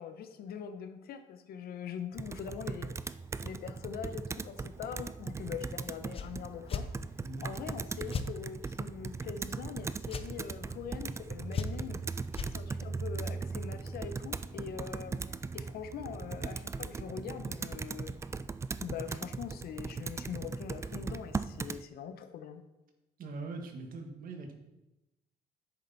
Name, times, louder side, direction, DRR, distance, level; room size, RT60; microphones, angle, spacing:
voice 1, 0.0-2.9 3.4-6.9 7.4-12.0 12.5-18.1 18.8-22.6, left 8 dB, 65° left, 8 dB, 1.0 m, -42 dB
Computer keyboard, 2.2-21.8, right 4 dB, 15° right, 0.3 m, -39 dB
sound 1, 6.1-6.3 6.7-6.9 8.1-8.3 10.1-10.3 11.5-11.9 12.3-12.5, left 6 dB, 35° left, 0.7 m, -35 dB
voice 2, 23.2-24.5, right 3 dB, 55° right, 4 dB, 1.8 m, -41 dB
10.5 x 7.8 x 4.2 m, 0.99 s
cardioid pair, 110°, 17 cm